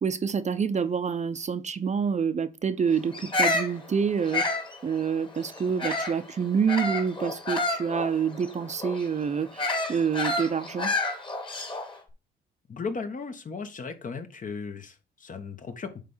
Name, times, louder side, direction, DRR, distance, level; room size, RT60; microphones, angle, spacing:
voice 1, 0.0-4.4 4.8-10.9, right 6 dB, 35° right, 0.8 m, -27 dB
Bird vocalization bird call bird song, 3.1-6.2 6.7-12.0, left 2 dB, 25° left, 2.0 m, -30 dB
voice 2, 12.7-15.9, left 4 dB, 40° left, 1.4 m, -36 dB
8.8 x 3.4 x 5.6 m
cardioid pair, 90°, 20 cm